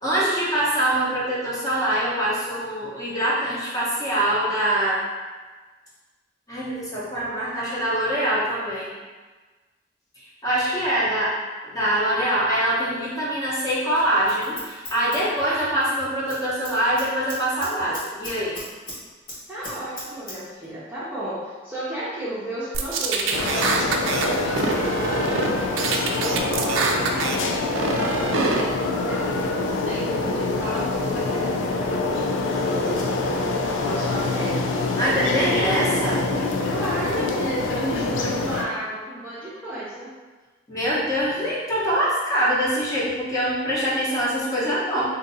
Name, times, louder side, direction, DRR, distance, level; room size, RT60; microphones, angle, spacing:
voice 1, 0.0-5.0 6.5-8.9 10.4-11.4 11.6-18.6 35.0-36.2 40.7-45.0, right 1 dB, 20° left, -8 dB, 0.8 m, -24 dB
Scissors, 13.9-15.9 16.2-16.4 16.7-19.0 19.3-20.4 20.6-20.7, left 1 dB, 45° left, 1.2 m, -37 dB
voice 2, 19.5-33.2 33.8-34.7 35.1-35.6 36.7-40.1, right 1 dB, 10° right, -11 dB, 0.6 m, -34 dB
sound 1, 22.7-24.3 24.6-25.5 25.8-27.4 27.7-28.6, right 4 dB, 90° right, 0.4 m, -25 dB
sound 2, 23.3-38.6, left 2 dB, 80° left, 0.4 m, -25 dB
2.6 x 2.6 x 3.9 m, 1.3 s
head